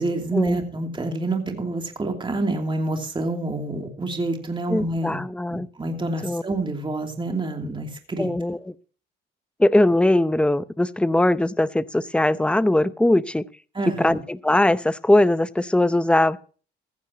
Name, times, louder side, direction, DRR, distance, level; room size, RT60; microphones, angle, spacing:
voice 1, 0.0-5.2 5.5-8.3 13.7-14.2, right 2 dB, 25° right, 2.9 m, -27 dB
voice 2, 4.7-5.7 6.2-6.4 8.2-8.7 9.6-13.4 14.0-16.4, left 1 dB, 5° left, 0.7 m, -20 dB
15.5 x 14.0 x 2.9 m
cardioid pair, 90°, 20 cm